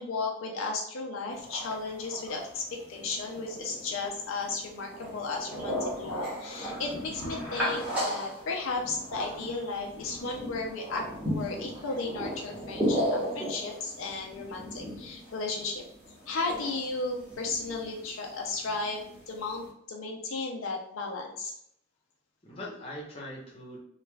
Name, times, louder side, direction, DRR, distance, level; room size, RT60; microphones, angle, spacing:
voice 1, 0.0-15.8 16.3-21.5, left 3 dB, 75° left, 1 dB, 0.4 m, -34 dB
sound 1, 1.3-19.7, equal, 5° right, 1.0 m, -36 dB
voice 2, 22.4-23.8, left 1 dB, 25° left, -3 dB, 0.7 m, -43 dB
3.2 x 2.3 x 2.2 m, 0.72 s
head